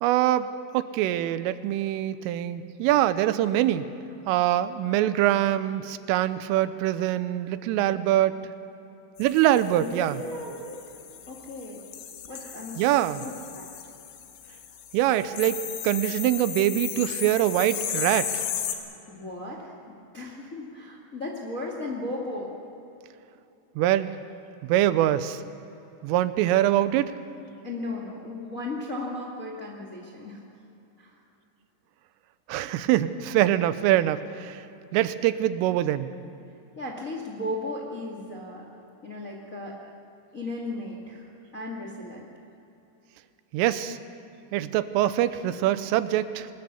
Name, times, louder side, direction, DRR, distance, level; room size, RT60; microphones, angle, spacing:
voice 1, 0.0-0.5 0.7-3.9 4.3-8.4 9.2-10.2 12.8-13.2 14.9-18.4 23.8-24.1 24.6-25.4 26.0-27.1 32.5-34.6 34.9-36.1 43.5-44.0 44.5-46.5, right 13 dB, 90° right, 13 dB, 3.3 m, -24 dB
sound 1, 9.2-18.8, left 10 dB, 85° left, 4.2 m, -36 dB
voice 2, 9.7-11.8 12.3-12.8 13.1-13.7 19.1-22.5 27.6-30.4 31.0-31.1 36.7-38.6 39.0-39.8 40.3-42.2, left 2 dB, 35° left, -1 dB, 1.2 m, -36 dB
23.5 x 20.0 x 7.0 m, 2.9 s
omnidirectional pair, 5.7 m